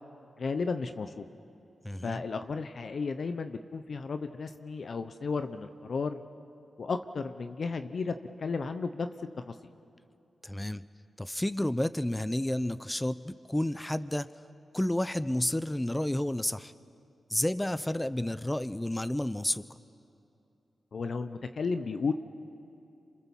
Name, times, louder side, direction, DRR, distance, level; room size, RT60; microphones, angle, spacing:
voice 1, 0.4-1.3 2.0-6.2 6.8-9.1 9.5-9.6 20.9-22.1, left 4 dB, 65° left, 9 dB, 0.9 m, -33 dB
voice 2, 1.8-2.2 10.4-10.9 11.2-14.3 14.7-16.7 17.3-19.7, left 1 dB, 10° left, 14 dB, 0.8 m, -31 dB
27.5 x 26.0 x 7.4 m, 2.7 s
cardioid pair, 60°, 0 cm